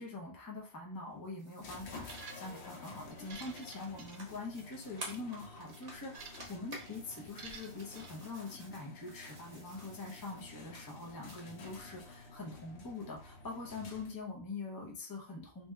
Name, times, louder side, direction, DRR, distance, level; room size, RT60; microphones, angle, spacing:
voice 1, 0.0-15.7, left 3 dB, 25° left, 0 dB, 0.6 m, -44 dB
sound 1, 1.2-11.7, right 1 dB, 40° right, 1.0 m, -53 dB
sound 2, 1.6-14.4, left 3 dB, 75° left, 0.8 m, -52 dB
sound 3, 2.0-2.7 3.1-4.6 4.9-5.2 5.7-6.5 6.8-7.0 7.4-8.1, right 5 dB, 70° right, 0.8 m, -51 dB
3.3 x 2.8 x 2.2 m, 0.39 s
omnidirectional pair, 1.2 m